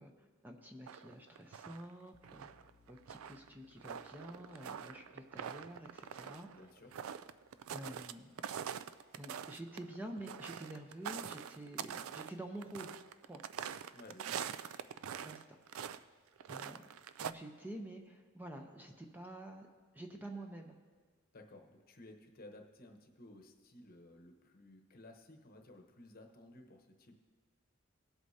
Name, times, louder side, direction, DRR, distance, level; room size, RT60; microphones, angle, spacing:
voice 1, 0.0-6.5 7.7-8.3 9.2-12.9 13.2-13.4 15.2-15.6 16.5-16.9 17.2-19.7 19.9-20.7, right 1 dB, 10° right, 3 dB, 0.6 m, -49 dB
sound 1, 0.9-1.9 2.2-8.1 8.4-15.4 15.7-16.0 16.4-17.3, right 8 dB, 70° right, 0.3 m, -44 dB
sound 2, 2.1-13.4, left 2 dB, 75° left, 1.0 m, -74 dB
voice 2, 6.5-6.9 13.9-14.5 21.3-27.2, left 1 dB, 45° left, 4 dB, 1.0 m, -56 dB
18.0 x 8.0 x 2.8 m, 1.5 s
head